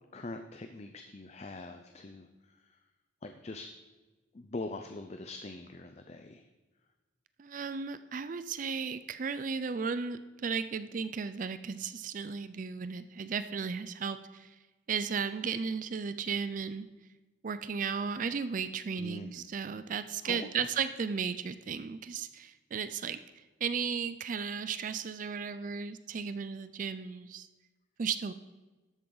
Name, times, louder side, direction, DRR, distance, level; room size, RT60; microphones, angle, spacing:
voice 1, 0.1-2.8 3.2-3.7 4.3-6.5 19.0-19.5 20.2-20.7, left 2 dB, 35° left, 6 dB, 0.5 m, -43 dB
voice 2, 7.4-14.6 14.9-16.9 17.4-27.5 28.0-28.3, right 6 dB, 40° right, 12 dB, 0.4 m, -35 dB
12.5 x 8.5 x 3.9 m, 1.2 s
head